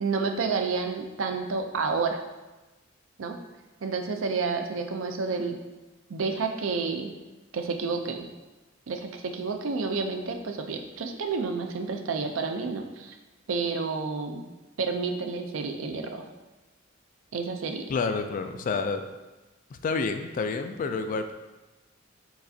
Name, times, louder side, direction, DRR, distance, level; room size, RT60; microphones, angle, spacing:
voice 1, 0.0-2.2 3.2-3.4 3.8-5.6 6.1-7.1 7.5-8.3 8.9-13.1 13.5-14.4 14.8-16.2 17.3-17.9, right 4 dB, 75° right, 5 dB, 0.5 m, -30 dB
voice 2, 17.9-19.0 19.7-21.3, left 4 dB, 40° left, 8 dB, 0.3 m, -29 dB
4.7 x 4.2 x 2.7 m, 1.1 s
head